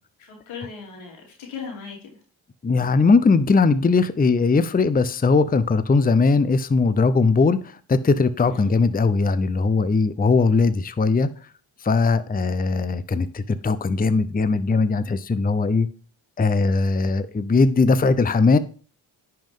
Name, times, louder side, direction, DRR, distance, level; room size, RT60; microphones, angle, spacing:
voice 1, 0.3-2.1 8.4-8.7, left 5 dB, 90° left, 3.3 m, -37 dB
voice 2, 2.6-11.3 11.8-15.9 16.4-18.6, left 4 dB, 20° left, 0.7 m, -19 dB
10.5 x 5.6 x 3.7 m
supercardioid pair, 50°, 47 cm